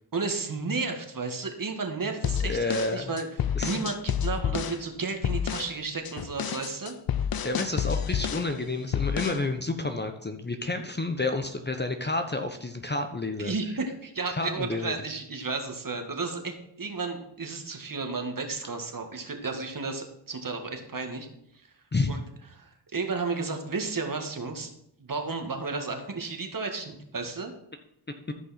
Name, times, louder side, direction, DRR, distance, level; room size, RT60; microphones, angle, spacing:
voice 1, 0.1-6.9 13.4-21.3 22.1-22.2 22.5-24.7 25.0-27.5, right 4 dB, 40° right, 4 dB, 1.8 m, -33 dB
sound 1, 2.2-4.8 5.2-5.7 6.1-8.5 8.9-9.5, left 8 dB, 45° left, 0.6 m, -29 dB
voice 2, 2.4-3.1 3.5-3.7 7.4-13.5 14.4-14.9 21.9-22.1 28.3-28.4, left 2 dB, 20° left, 6 dB, 0.9 m, -30 dB
14.0 x 5.4 x 4.3 m, 0.76 s
cardioid pair, 65°, 49 cm